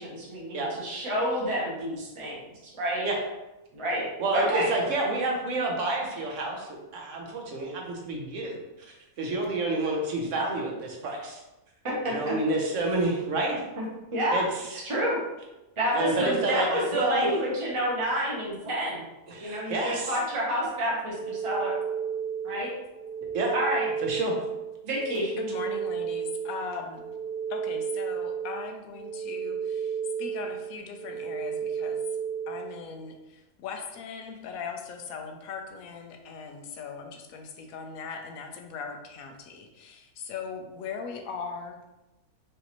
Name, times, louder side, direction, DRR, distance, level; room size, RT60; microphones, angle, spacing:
voice 1, 0.0-2.4 2.7-3.1 3.7-4.0 4.3-4.7 11.8-12.3 14.1-14.4 14.7-15.2 15.8-19.0 19.4-21.7 22.4-22.7 23.5-23.9 24.8-25.3, equal, 25° right, -5 dB, 0.9 m, -29 dB
voice 2, 0.5-1.0 3.0-3.2 4.2-11.4 12.1-13.6 14.3-14.4 14.7-14.8 15.9-17.3 19.3-20.1 23.3-23.5 24.0-24.3, right 2 dB, 60° right, 0 dB, 1.1 m, -29 dB
sound 1, 21.1-32.8, right 7 dB, 25° left, 1.1 m, -33 dB
voice 3, 25.4-27.0 27.5-32.0 32.5-41.8, left 5 dB, 75° left, 4 dB, 1.0 m, -39 dB
5.0 x 2.7 x 3.0 m, 0.99 s
omnidirectional pair, 1.5 m